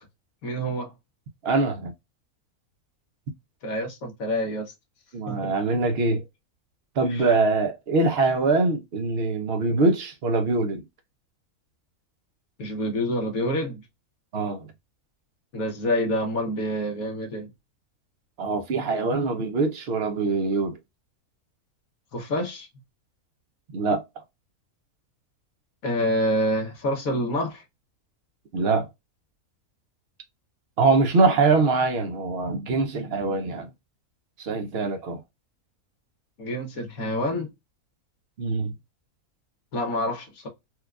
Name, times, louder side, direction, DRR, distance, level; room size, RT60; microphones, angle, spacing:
voice 1, 0.4-0.9 3.6-4.6 5.3-5.5 7.1-7.3 12.6-13.8 15.5-17.5 22.1-22.7 25.8-27.6 36.4-37.5 39.7-40.5, equal, 70° left, 1.6 m, -27 dB
voice 2, 1.4-1.9 5.1-6.2 7.0-10.8 14.3-14.7 18.4-20.8 23.7-24.0 28.5-28.9 30.8-33.7 34.4-35.2 38.4-38.7, right 3 dB, 55° right, 0.7 m, -23 dB
4.4 x 2.4 x 2.3 m
omnidirectional pair, 1.6 m